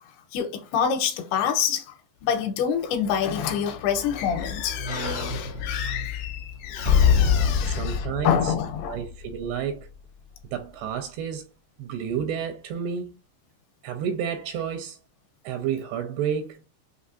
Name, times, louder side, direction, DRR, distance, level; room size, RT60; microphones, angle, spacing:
voice 1, 0.3-1.9 2.2-9.0, left 8 dB, 80° left, 2.8 m, -27 dB
sound 1, 3.1-9.5 9.9-10.0, left 7 dB, 10° left, 1.2 m, -26 dB
voice 2, 6.7-7.1 7.7-8.5 8.9-9.9 10.5-11.4 11.8-13.2 13.8-15.0 15.4-16.7, right 8 dB, 85° right, 2.7 m, -31 dB
6.4 x 2.8 x 2.5 m
omnidirectional pair, 4.7 m